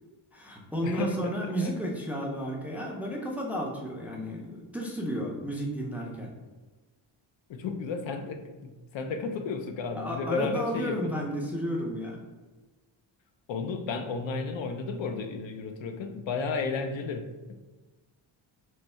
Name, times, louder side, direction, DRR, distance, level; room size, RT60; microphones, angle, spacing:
voice 1, 0.3-6.3 9.9-12.2, equal, 5° right, -1 dB, 0.4 m, -32 dB
voice 2, 0.8-1.7 7.5-11.2 13.5-17.5, left 4 dB, 70° left, 7 dB, 0.6 m, -33 dB
3.2 x 2.7 x 4.2 m, 1.2 s
wide cardioid pair, 155°, 47 cm